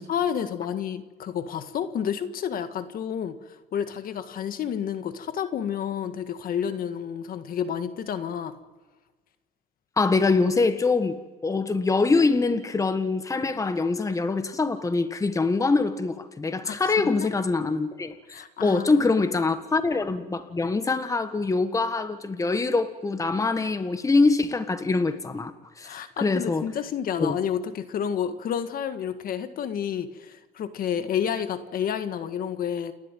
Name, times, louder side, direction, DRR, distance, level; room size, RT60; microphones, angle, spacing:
voice 1, 0.0-8.5 16.6-16.8 17.0-17.3 18.3-19.3 25.8-32.9, left 8 dB, 60° left, 10 dB, 1.8 m, -30 dB
voice 2, 10.0-25.5 25.8-26.6 27.2-27.4, left 3 dB, 20° left, 10 dB, 1.5 m, -24 dB
29.5 x 12.5 x 9.1 m, 1.3 s
cardioid pair, 110°, 17 cm